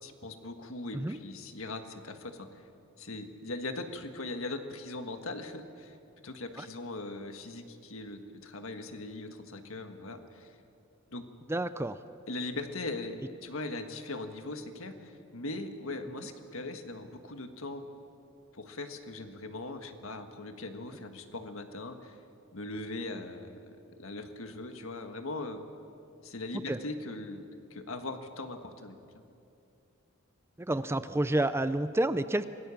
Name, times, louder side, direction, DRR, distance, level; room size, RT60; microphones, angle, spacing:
voice 1, 0.0-2.5 3.0-6.0 6.2-10.6 11.1-11.2 12.3-17.8 18.5-22.2 22.5-23.6 24.0-25.6 26.2-27.4 27.7-29.0, left 2 dB, 75° left, 7 dB, 1.6 m, -40 dB
voice 2, 11.5-12.0 26.7-26.8 30.6-32.5, right 1 dB, 10° right, 13 dB, 0.5 m, -29 dB
26.5 x 18.5 x 7.2 m, 2.7 s
head